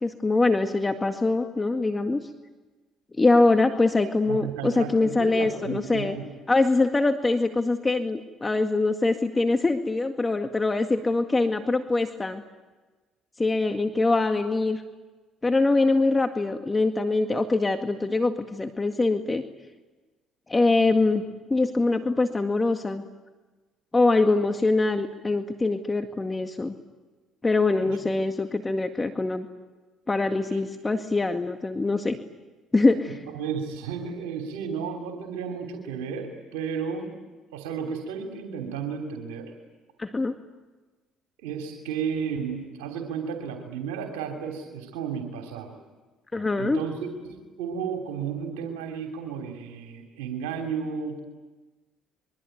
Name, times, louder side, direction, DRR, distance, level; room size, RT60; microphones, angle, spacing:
voice 1, 0.0-2.2 3.2-6.2 6.5-12.4 13.4-14.8 15.4-19.4 20.5-21.2 21.5-23.0 23.9-26.7 27.4-29.5 30.1-32.2 32.7-33.2 40.0-40.4 46.3-46.8, left 3 dB, 20° left, 6 dB, 1.9 m, -23 dB
voice 2, 4.3-6.3 27.8-28.0 30.5-30.6 33.0-37.1 37.5-39.5 41.4-45.7 46.6-51.2, right 6 dB, 90° right, 3 dB, 3.2 m, -33 dB
26.0 x 23.5 x 9.3 m, 1.2 s
supercardioid pair, 65°, 0 cm